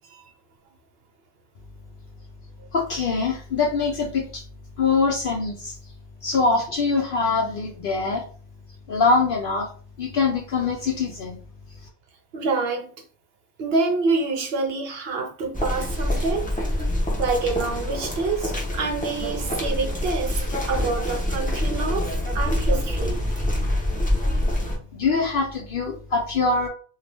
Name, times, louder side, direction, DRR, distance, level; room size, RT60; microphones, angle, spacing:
voice 1, 2.7-4.4 4.8-5.8 6.2-8.2 8.9-9.7 10.0-11.4 24.9-26.7, left 4 dB, 60° left, 0.6 m, -23 dB
voice 2, 12.3-12.9 13.6-16.5 17.2-23.8, right 3 dB, 65° right, 0.7 m, -27 dB
sound 1, 15.5-24.8, left 1 dB, 10° left, 0.7 m, -25 dB
2.7 x 2.3 x 3.3 m
omnidirectional pair, 1.3 m